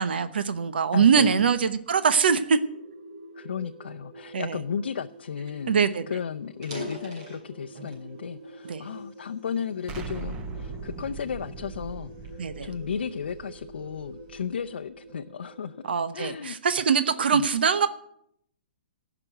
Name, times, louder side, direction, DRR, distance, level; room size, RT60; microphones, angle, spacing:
voice 1, 0.0-2.6 4.3-4.6 5.7-6.0 8.7-8.8 12.4-12.7 15.9-17.9, right 6 dB, 70° right, 11 dB, 0.9 m, -23 dB
voice 2, 0.9-1.5 3.3-5.8 6.1-15.9 16.1-16.6 17.3-17.5, left 7 dB, 80° left, 6 dB, 0.6 m, -34 dB
sound 1, 2.4-16.0, right 2 dB, 55° right, 1.3 m, -47 dB
sound 2, 6.5-8.1 8.6-9.9 10.5-10.8 11.4-13.4, equal, 35° right, 4.5 m, -41 dB
Explosion, 9.9-14.7, right 4 dB, 10° right, 0.6 m, -40 dB
15.5 x 6.0 x 9.0 m, 0.72 s
hypercardioid pair, 180°, 6 cm